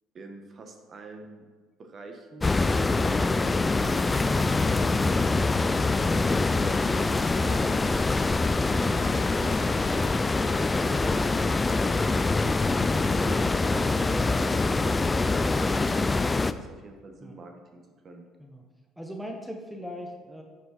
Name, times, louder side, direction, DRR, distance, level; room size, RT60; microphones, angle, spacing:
voice 1, 0.1-1.5 1.8-2.8 6.0-7.9 8.2-10.0 10.7-12.2 13.2-16.0 16.3-18.3, right 3 dB, 40° right, 4 dB, 1.2 m, -45 dB
sound 1, 2.4-16.5, left 3 dB, 20° left, 0.3 m, -24 dB
voice 2, 19.0-20.4, equal, ahead, 2 dB, 0.9 m, -39 dB
9.2 x 4.6 x 4.2 m, 1.4 s
supercardioid pair, 90°, 0 cm